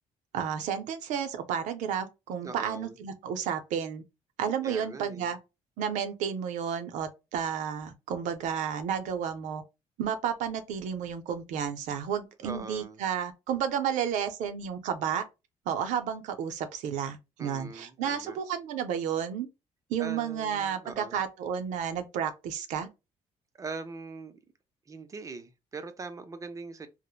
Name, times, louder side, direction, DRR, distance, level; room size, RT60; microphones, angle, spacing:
voice 1, 0.3-4.0 4.4-5.4 5.8-9.6 10.0-15.2 15.7-19.5 19.9-22.9, right 8 dB, 80° right, 0.5 m, -32 dB
voice 2, 2.4-3.0 4.6-5.3 12.4-13.0 17.4-18.4 20.0-21.2 23.6-24.4 24.9-26.9, right 4 dB, 25° right, 0.5 m, -41 dB
3.0 x 2.0 x 2.2 m
cardioid pair, 95°, 13 cm